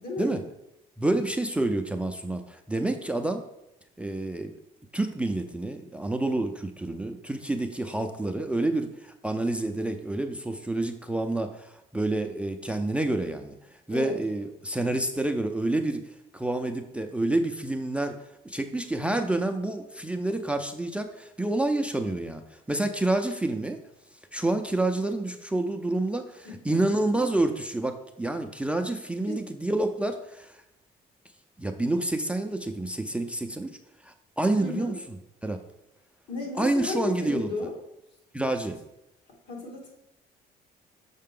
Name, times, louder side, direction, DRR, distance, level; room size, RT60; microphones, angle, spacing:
voice 1, 0.0-0.3 13.9-14.2 26.4-26.8 29.3-29.4 34.6-35.0 36.3-37.8 39.5-39.9, left 2 dB, 75° left, -1 dB, 2.1 m, -33 dB
voice 2, 1.0-3.4 4.0-4.5 4.9-13.5 13.9-16.0 16.3-18.2 18.4-23.8 24.3-30.6 31.6-33.8 34.0-35.2 35.4-35.6 36.6-37.5 38.3-38.8, right 2 dB, 5° right, 6 dB, 0.4 m, -28 dB
6.6 x 4.7 x 3.7 m, 0.87 s
cardioid pair, 110°, 17 cm